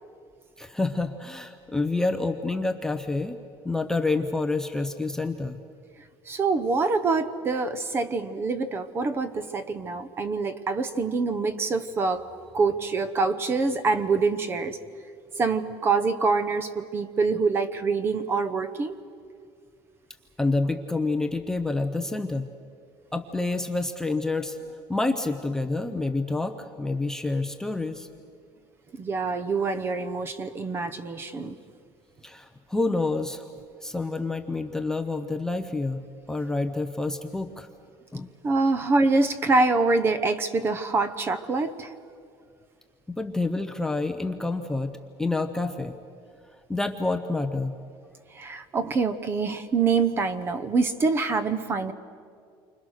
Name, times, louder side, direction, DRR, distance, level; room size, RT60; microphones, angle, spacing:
voice 1, 0.6-3.4 3.6-5.6 20.4-22.5 23.1-24.6 24.9-28.1 32.2-33.5 33.8-37.7 38.1-38.3 43.1-45.9 46.7-47.8, left 3 dB, 5° left, 6 dB, 0.6 m, -28 dB
voice 2, 6.3-12.3 12.5-14.8 15.4-18.9 29.0-31.6 38.4-41.9 48.3-51.9, right 4 dB, 20° right, 13 dB, 0.9 m, -25 dB
29.0 x 25.0 x 6.5 m, 2.2 s
cardioid pair, 180°, 11 cm